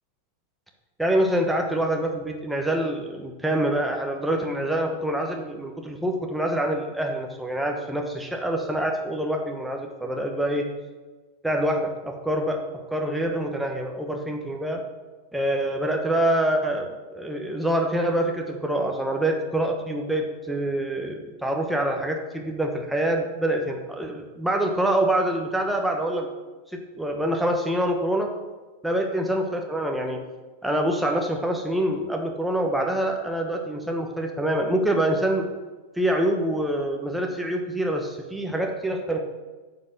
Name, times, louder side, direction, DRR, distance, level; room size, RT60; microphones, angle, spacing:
voice 1, 1.0-10.7 11.4-12.6 12.9-14.8 15.3-26.3 26.7-28.3 28.8-30.2 30.6-35.5 36.0-39.2, right 1 dB, 5° right, 2 dB, 1.1 m, -25 dB
9.4 x 5.8 x 6.6 m, 1.3 s
figure-of-eight pair, 90°, 0 cm